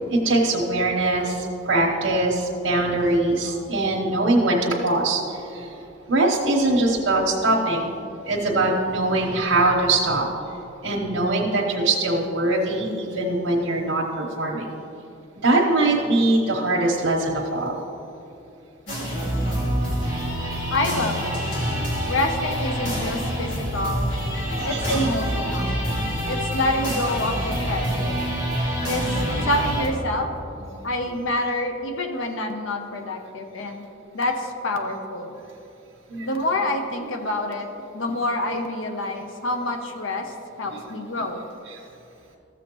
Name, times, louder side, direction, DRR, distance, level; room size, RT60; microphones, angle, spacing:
voice 1, 0.2-5.7 6.1-8.0 8.2-10.3 10.8-14.7 15.4-17.7 24.6-25.1 26.0-26.1 30.8-30.9 36.1-36.3 41.7-41.8, right 2 dB, 80° right, -4 dB, 1.0 m, -22 dB
sound 1, 18.9-29.9, equal, 70° left, 2.3 m, -26 dB
voice 2, 20.7-21.5 22.1-24.1 24.6-25.8 26.3-28.2 28.9-30.3 30.8-33.8 34.1-35.4 36.2-41.4, left 1 dB, 85° left, 5 dB, 0.8 m, -27 dB
14.5 x 7.1 x 3.0 m, 2.8 s
head